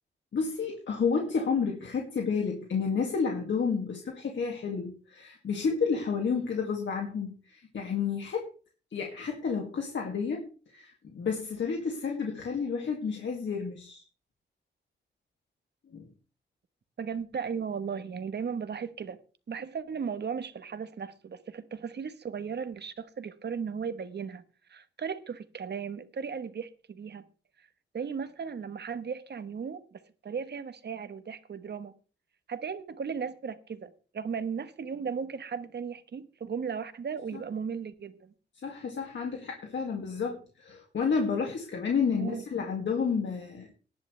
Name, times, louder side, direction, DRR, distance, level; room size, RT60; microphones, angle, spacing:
voice 1, 0.3-8.5 8.9-14.0 15.9-16.1 37.3-37.4 38.6-43.8, left 5 dB, 75° left, 2.4 m, -31 dB
voice 2, 17.0-19.2 19.5-24.4 24.7-27.2 27.9-31.9 32.5-38.3 42.2-42.4, right 6 dB, 60° right, 1.3 m, -36 dB
19.0 x 10.5 x 3.3 m
wide cardioid pair, 120°, 19 cm